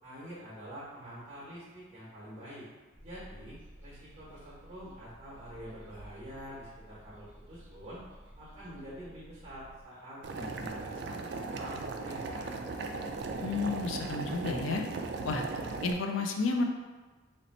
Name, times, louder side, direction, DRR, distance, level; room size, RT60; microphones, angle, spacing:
voice 1, 0.0-2.7 3.0-8.0 8.4-12.5, equal, 30° right, -8 dB, 1.0 m, -46 dB
sound 1, 2.9-9.8, equal, 10° right, 0.8 m, -53 dB
Boiling, 10.2-15.9, right 3 dB, 55° right, 0.3 m, -37 dB
voice 2, 13.4-14.8 15.2-15.4 15.8-16.7, left 3 dB, 85° left, 3 dB, 0.4 m, -31 dB
3.1 x 2.8 x 4.1 m, 1.3 s
head